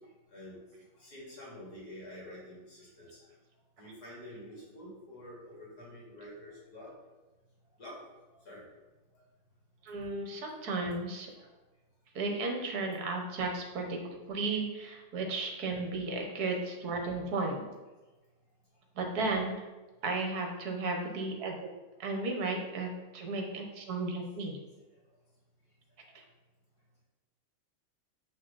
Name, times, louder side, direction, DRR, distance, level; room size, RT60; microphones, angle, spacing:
voice 1, 1.0-3.1 3.8-6.9 7.8-7.9 8.3-8.6 11.4-11.5 15.2-15.3 26.1-26.2, left 1 dB, 45° left, -6 dB, 3.4 m, -48 dB
voice 2, 9.8-11.3 12.1-14.0 14.3-17.6 19.0-19.6 20.0-21.5 22.0-24.6, right 3 dB, 50° right, 2 dB, 1.5 m, -34 dB
7.6 x 6.3 x 4.1 m, 1.2 s
omnidirectional pair, 2.3 m